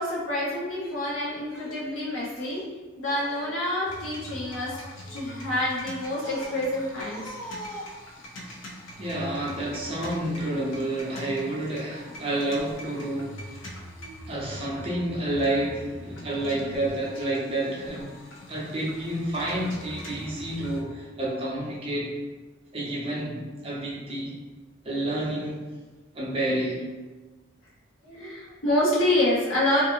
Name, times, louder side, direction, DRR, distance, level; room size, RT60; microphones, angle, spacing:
voice 1, 0.0-2.6 3.0-7.8 28.0-29.8, left 1 dB, 90° left, -6 dB, 0.9 m, -27 dB
sound 1, 3.9-20.8, left 1 dB, 70° left, 0.5 m, -43 dB
voice 2, 9.0-13.6 14.3-18.1 18.5-22.1 22.7-24.3 24.8-25.6 26.1-26.8, right 1 dB, 30° right, -6 dB, 0.6 m, -29 dB
2.5 x 2.4 x 2.6 m, 1.2 s
head